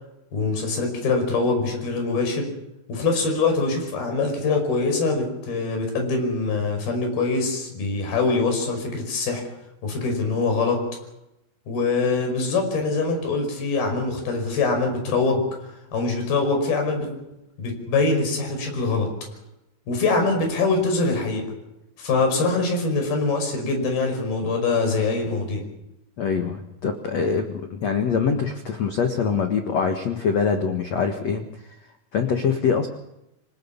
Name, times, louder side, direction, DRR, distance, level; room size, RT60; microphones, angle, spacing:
voice 1, 0.3-2.5 2.9-9.4 9.8-10.8 11.7-15.4 15.9-17.1 17.6-19.1 19.9-21.4 22.0-25.6, left 3 dB, 50° left, 4 dB, 7.1 m, -23 dB
voice 2, 26.2-31.4 32.1-32.9, left 6 dB, 70° left, 5 dB, 1.5 m, -24 dB
26.0 x 18.5 x 7.2 m, 0.89 s
omnidirectional pair, 5.7 m